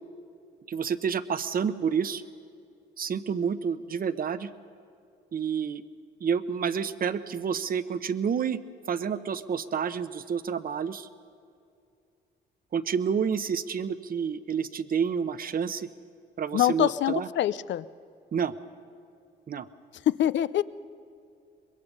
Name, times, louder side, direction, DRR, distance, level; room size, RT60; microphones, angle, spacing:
voice 1, 0.7-2.2 3.0-4.5 5.3-5.8 6.2-8.6 8.9-11.1 12.7-15.9 16.4-17.3 18.3-18.5 19.5-19.7, right 7 dB, 45° right, 13 dB, 0.9 m, -29 dB
voice 2, 16.5-17.9 20.1-20.6, left 12 dB, 65° left, 17 dB, 0.6 m, -25 dB
24.0 x 22.0 x 5.5 m, 2.5 s
cardioid pair, 90°, 20 cm